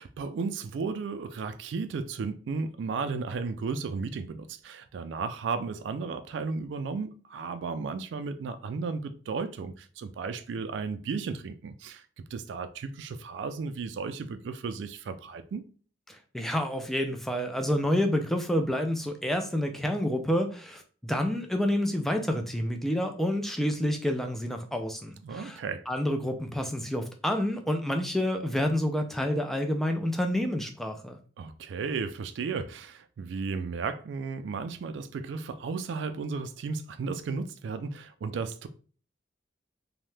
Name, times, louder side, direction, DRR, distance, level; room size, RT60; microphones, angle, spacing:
voice 1, 0.0-12.1 12.3-15.6 25.2-25.9 31.4-38.7, right 4 dB, 80° right, 0.3 m, -34 dB
voice 2, 16.1-25.6 25.9-31.2, left 1 dB, ahead, 0.3 m, -28 dB
2.7 x 2.1 x 3.2 m
head